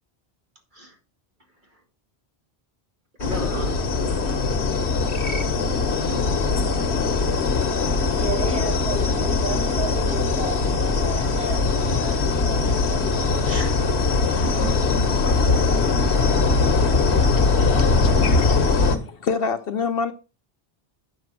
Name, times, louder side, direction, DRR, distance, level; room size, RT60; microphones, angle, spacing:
sound 1, 3.2-19.0, left 4 dB, 90° left, 1.5 m, -21 dB
voice 1, 3.2-4.7 5.2-6.4 13.4-13.8 14.4-15.5, right 1 dB, 50° right, 2.4 m, -36 dB
voice 2, 8.1-13.1, right 2 dB, 5° right, 4.6 m, -33 dB
voice 3, 17.6-20.1, left 5 dB, 65° left, 0.9 m, -28 dB
9.3 x 5.9 x 6.1 m
omnidirectional pair, 1.1 m